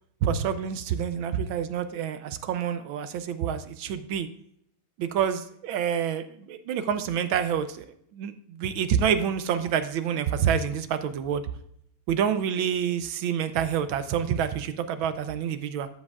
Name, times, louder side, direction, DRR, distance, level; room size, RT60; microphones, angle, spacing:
voice 1, 0.2-4.3 5.0-7.9 8.1-11.4 12.1-15.9, right 8 dB, 75° right, 11 dB, 1.4 m, -27 dB
13.0 x 7.5 x 2.4 m, 0.69 s
omnidirectional pair, 2.4 m